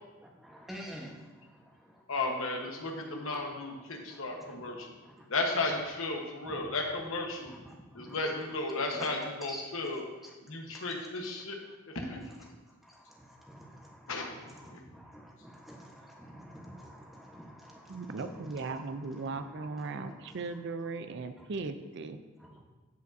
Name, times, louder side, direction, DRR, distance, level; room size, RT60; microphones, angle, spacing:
voice 1, 0.2-2.0 2.7-3.4 3.8-5.3 6.4-6.7 7.4-9.1 9.5-9.9 10.2-10.3 12.4-12.5 12.8-20.6 22.4-22.6, equal, ahead, -3 dB, 1.1 m, -50 dB
voice 2, 2.1-4.9 5.3-7.5 7.9-10.0 10.4-11.6 11.9-12.2 14.1-14.8, left 2 dB, 70° left, 1 dB, 1.2 m, -34 dB
voice 3, 17.9-22.2, right 3 dB, 55° right, 9 dB, 0.4 m, -38 dB
14.5 x 5.0 x 2.7 m, 1.2 s
head